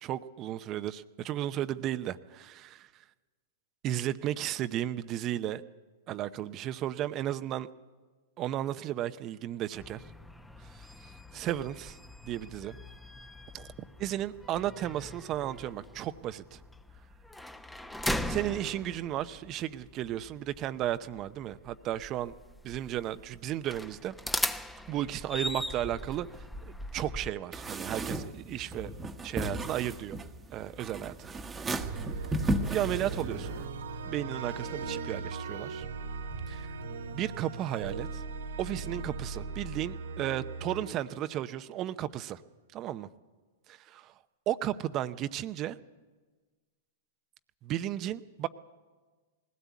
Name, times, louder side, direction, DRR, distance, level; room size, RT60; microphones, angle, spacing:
voice 1, 0.0-2.9 3.8-5.6 6.1-7.7 8.4-10.0 11.3-12.0 12.2-12.8 13.5-13.7 14.0-16.6 18.3-22.3 22.6-24.1 24.9-26.3 26.7-28.9 29.2-30.2 30.5-31.4 32.7-33.6 34.0-35.8 36.5-36.7 37.1-38.2 38.6-42.4 42.7-43.1 43.7-44.1 44.5-45.8 47.6-48.5, right 12 dB, 35° right, 12 dB, 0.7 m, -34 dB
sound 1, 9.8-27.3, left 1 dB, 5° left, 0.9 m, -40 dB
sound 2, 27.5-33.6, right 1 dB, 15° right, 1.3 m, -35 dB
sound 3, 31.8-42.0, right 4 dB, 75° right, 2.2 m, -39 dB
20.0 x 17.0 x 8.4 m, 1.4 s
hypercardioid pair, 115°, 0 cm